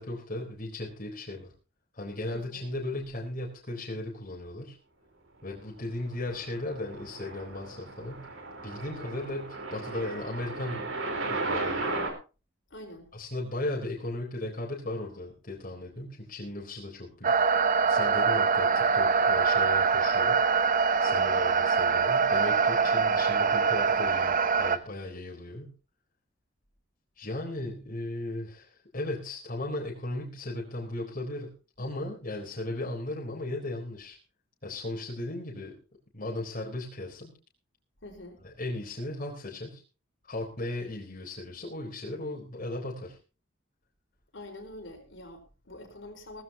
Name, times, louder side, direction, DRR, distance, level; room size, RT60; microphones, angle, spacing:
voice 1, 0.0-1.5 1.9-4.8 5.4-8.3 8.6-10.9 11.3-12.0 13.1-17.3 17.7-20.4 21.0-25.7 27.2-31.5 31.8-34.2 34.6-35.8 36.1-37.3 38.6-39.8 40.3-43.2, left 1 dB, 45° left, -1 dB, 3.8 m, -36 dB
voice 2, 2.3-2.7 12.7-13.1 21.1-21.4 38.0-38.4 44.3-46.4, left 1 dB, 65° left, 2 dB, 4.4 m, -45 dB
sound 1, 6.0-12.1, right 3 dB, 70° right, 4.0 m, -35 dB
sound 2, 17.2-24.8, right 5 dB, 40° right, 0.8 m, -24 dB
18.5 x 14.0 x 2.8 m, 0.33 s
head